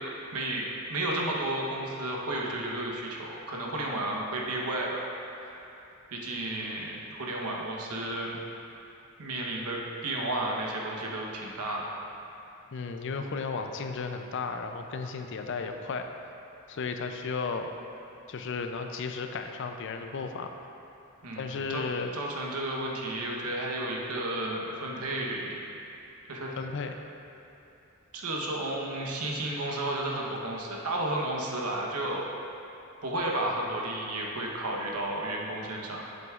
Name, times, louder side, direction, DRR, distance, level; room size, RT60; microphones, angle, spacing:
voice 1, 0.3-5.1 5.4-5.8 6.1-8.4 9.2-11.9 21.2-21.8 22.1-25.6 26.3-26.5 28.1-32.3 33.0-36.0, right 1 dB, 80° right, -2 dB, 1.0 m, -32 dB
voice 2, 12.7-16.1 16.7-17.7 18.3-20.5 21.3-22.1 26.6-26.9, left 4 dB, 55° left, 5 dB, 0.4 m, -34 dB
7.9 x 7.8 x 2.4 m, 2.9 s
head